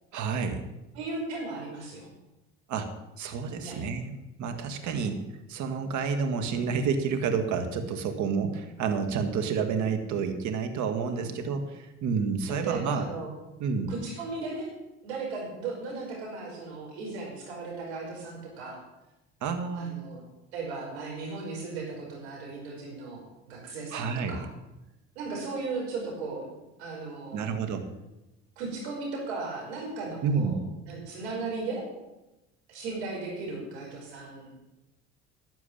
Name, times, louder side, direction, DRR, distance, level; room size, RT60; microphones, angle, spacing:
voice 1, 0.1-0.6 2.7-2.9 3.2-5.2 5.5-13.0 13.6-13.9 19.4-20.0 23.9-24.4 27.3-27.8 30.2-30.6, right 5 dB, 60° right, 6 dB, 2.1 m, -29 dB
voice 2, 0.9-2.1 3.6-3.8 4.8-5.1 11.1-11.3 12.5-13.3 13.9-14.7 15.0-18.8 19.7-20.2 20.5-24.4 25.2-26.4 26.8-27.5 28.6-30.6 30.9-31.9 32.7-34.5, right 3 dB, 85° right, -1 dB, 5.3 m, -36 dB
13.0 x 7.4 x 8.7 m, 0.98 s
hypercardioid pair, 60°, 32 cm